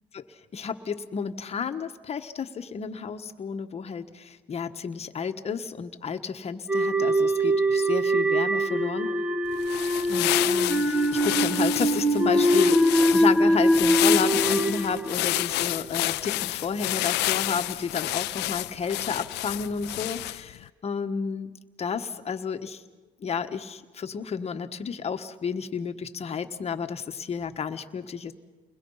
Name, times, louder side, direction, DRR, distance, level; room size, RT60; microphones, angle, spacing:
voice 1, 0.5-9.2 10.0-21.5 21.8-22.8 23.2-28.3, left 6 dB, 40° left, 7 dB, 1.4 m, -31 dB
sound 1, 6.7-15.9, equal, 10° right, 1.3 m, -23 dB
sound 2, 9.5-20.6, left 18 dB, 85° left, 0.6 m, -29 dB
29.5 x 21.5 x 5.7 m, 1.3 s
cardioid pair, 110°, 17 cm